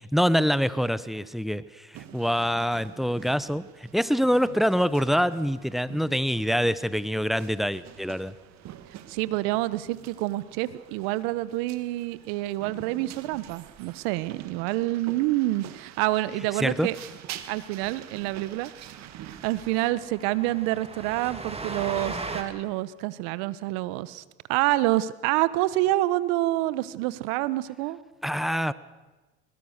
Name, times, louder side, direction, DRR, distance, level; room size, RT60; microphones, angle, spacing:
voice 1, 0.1-8.3 16.6-16.9 28.2-28.7, equal, ahead, 17 dB, 0.8 m, -25 dB
sound 1, 1.9-19.9, right 11 dB, 55° right, 1.8 m, -47 dB
voice 2, 9.1-17.0 17.5-18.7 19.3-24.2 24.5-28.0, right 17 dB, 70° right, 17 dB, 1.1 m, -27 dB
Train, 17.9-18.0 18.2-18.4 18.6-18.7 19.1-22.4, right 3 dB, 20° right, 2.9 m, -37 dB
21.0 x 21.0 x 6.6 m, 1.2 s
hypercardioid pair, 80°, 32 cm